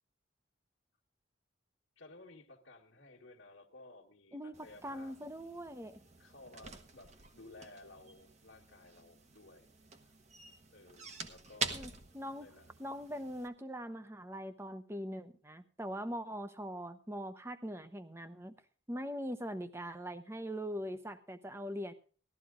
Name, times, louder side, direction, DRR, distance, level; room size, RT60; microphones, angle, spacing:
voice 1, 1.9-5.2 6.2-9.7 10.0-10.1 10.7-12.0 12.3-12.7, left 2 dB, 70° left, -5 dB, 1.5 m, -56 dB
voice 2, 4.3-6.0 11.7-12.5 12.8-18.5 18.9-21.9, equal, 15° right, 11 dB, 0.7 m, -42 dB
sound 1, 4.5-13.5, right 4 dB, 35° right, 1.1 m, -46 dB
15.0 x 12.5 x 3.8 m, 0.38 s
head